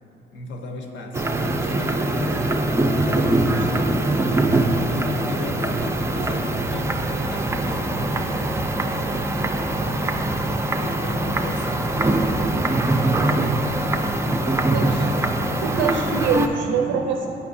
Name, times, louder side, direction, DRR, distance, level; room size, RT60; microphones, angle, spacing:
voice 1, 0.3-10.4 10.8-12.4 13.1-14.9 16.7-17.1, left 2 dB, 70° left, 2 dB, 0.7 m, -36 dB
sound 1, 1.1-16.5, right 2 dB, 15° right, 0.3 m, -22 dB
voice 2, 14.7-15.1 15.6-17.3, right 6 dB, 80° right, 2 dB, 0.4 m, -24 dB
8.6 x 4.7 x 2.6 m, 3.0 s
cardioid pair, 90°, 20 cm